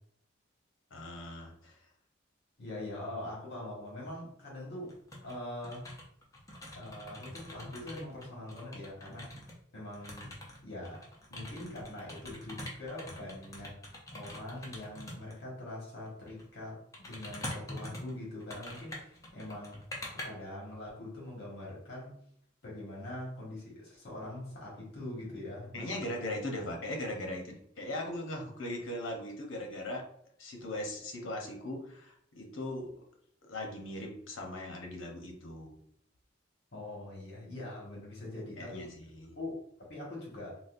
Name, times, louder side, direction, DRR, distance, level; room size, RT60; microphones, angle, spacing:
voice 1, 0.9-1.8 25.7-30.1 30.4-33.0 33.5-35.8 38.6-39.3, left 1 dB, 80° left, 2 dB, 0.8 m, -39 dB
voice 2, 2.6-4.9 5.2-5.9 6.7-9.3 9.7-10.3 10.6-11.0 11.3-13.8 14.1-19.8 20.2-22.1 22.6-26.1 36.7-38.9 39.3-40.6, left 1 dB, 60° left, -4 dB, 1.4 m, -43 dB
sound 1, 4.9-5.4 5.6-9.5 9.9-15.4 16.2-16.4 16.9-20.2, left 1 dB, 15° left, 0.6 m, -44 dB
4.0 x 2.1 x 2.5 m, 0.68 s
head